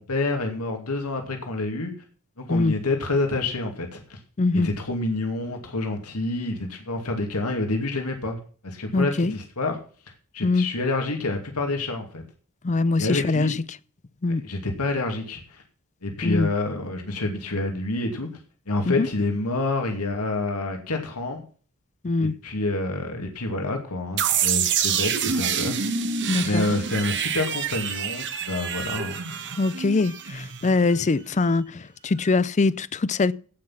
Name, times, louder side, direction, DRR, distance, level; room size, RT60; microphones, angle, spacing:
voice 1, 0.0-1.9 2.4-4.2 4.5-9.8 10.3-12.2 13.0-13.5 14.3-15.6 16.0-18.3 18.7-21.4 22.2-25.9 26.4-29.2, left 2 dB, 85° left, 2.5 m, -28 dB
voice 2, 4.4-4.7 8.9-9.3 10.4-10.7 12.6-13.5 14.2-14.4 16.2-16.5 18.9-19.1 22.0-22.4 26.3-26.7 29.6-33.3, left 3 dB, 30° left, 0.5 m, -23 dB
sound 1, 24.2-31.0, right 7 dB, 55° right, 1.4 m, -27 dB
16.0 x 6.1 x 5.8 m
head